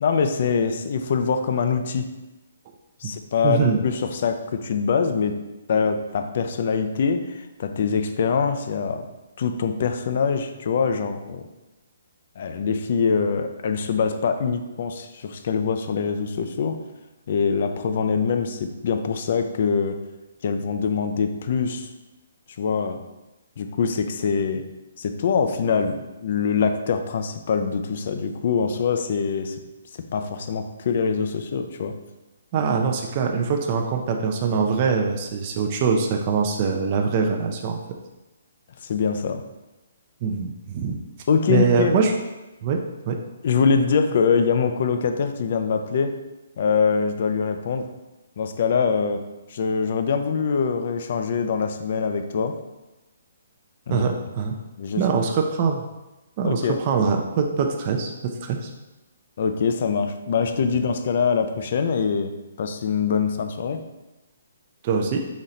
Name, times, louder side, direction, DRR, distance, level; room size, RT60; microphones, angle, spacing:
voice 1, 0.0-2.1 3.0-5.4 5.7-9.1 9.4-11.5 12.4-16.8 17.3-20.0 20.4-21.9 22.6-23.0 23.6-24.6 25.0-29.6 30.1-32.0 38.8-39.4 41.3-42.0 43.4-46.2 46.6-47.9 48.4-49.2 49.5-52.6 53.9-54.0 54.8-55.0 56.4-56.8 59.4-62.3 62.6-63.8, left 5 dB, 50° left, 7 dB, 0.4 m, -24 dB
voice 2, 3.4-3.8 32.5-37.8 40.2-41.0 41.5-42.1 42.6-42.8 43.1-43.2 53.9-54.6 55.0-55.8 56.4-58.7 64.8-65.2, right 5 dB, 35° right, 2 dB, 0.5 m, -23 dB
4.1 x 3.1 x 3.9 m, 1.0 s
hypercardioid pair, 155°, 0 cm